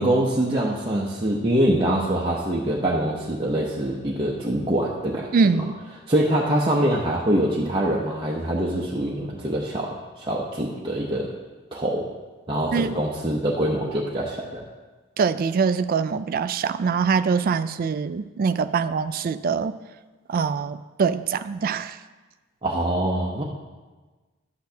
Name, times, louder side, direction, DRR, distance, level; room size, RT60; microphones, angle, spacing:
voice 1, 0.0-5.3 5.5-5.6 6.1-11.3 11.7-12.1 12.5-14.6 22.6-23.4, right 1 dB, 25° right, -4 dB, 0.7 m, -24 dB
voice 2, 5.3-5.8 12.7-12.9 15.2-19.8 20.3-22.0, right 5 dB, 45° right, 12 dB, 0.3 m, -23 dB
11.5 x 8.3 x 2.8 m, 1.3 s
head